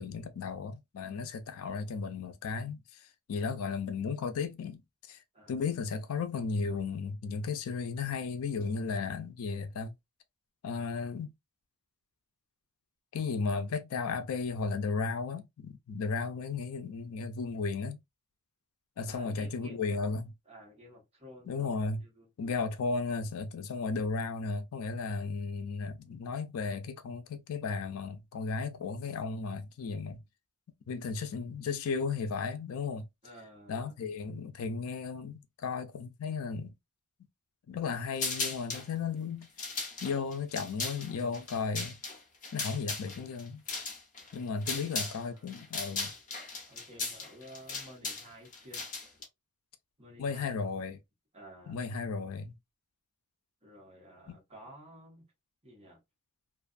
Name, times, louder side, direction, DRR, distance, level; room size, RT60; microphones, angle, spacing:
voice 1, 0.0-4.8 5.1-5.2 5.5-9.9 10.6-11.3 13.1-18.0 19.0-20.3 21.5-22.0 22.4-30.2 30.9-33.0 33.7-36.7 37.7-39.5 40.0-42.0 42.5-43.6 44.3-46.1 50.2-51.0 51.7-52.5 54.3-54.4, left 4 dB, 70° left, 0.4 m, -35 dB
voice 2, 5.3-5.7 19.1-20.1 20.5-22.6 33.2-34.0 44.4-45.6 46.7-48.8 50.0-50.6 51.3-51.8 53.6-55.3 55.6-56.0, equal, 30° right, 1.2 m, -53 dB
sound 1, 38.2-38.9 39.4-45.2 45.5-49.2, left 4 dB, 35° left, 0.9 m, -37 dB
2.5 x 2.3 x 2.4 m
head